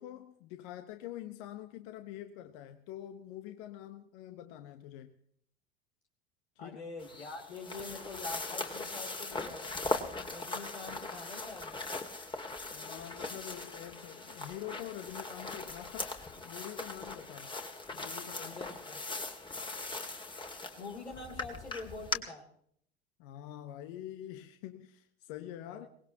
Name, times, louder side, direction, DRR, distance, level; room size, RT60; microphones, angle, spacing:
voice 1, 0.0-5.2 6.6-6.8 12.7-17.6 17.9-18.7 23.2-25.9, left 12 dB, 55° left, 1.1 m, -46 dB
voice 2, 6.6-9.7 10.3-11.7 18.4-19.0 20.8-22.4 25.7-25.9, left 3 dB, 85° left, 3.0 m, -45 dB
sound 1, 7.0-22.2, left 3 dB, 15° left, 2.0 m, -40 dB
23.0 x 19.0 x 2.9 m
figure-of-eight pair, 75°, 33 cm